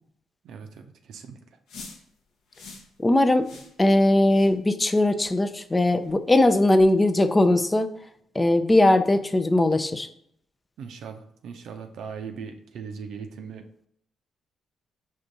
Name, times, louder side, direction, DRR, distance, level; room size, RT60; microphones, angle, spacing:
voice 1, 0.4-1.4 10.8-13.7, right 6 dB, 65° right, 5 dB, 0.5 m, -39 dB
sound 1, 1.7-2.0 2.5-2.9 3.4-3.7 4.3-4.5 5.2-5.4 6.0-6.1 6.8-6.9, left 4 dB, 65° left, 0.8 m, -45 dB
voice 2, 3.0-3.5 3.8-7.9 8.3-10.1, left 1 dB, 25° left, 9 dB, 0.5 m, -20 dB
5.3 x 2.6 x 3.9 m, 0.68 s
hypercardioid pair, 45°, 0 cm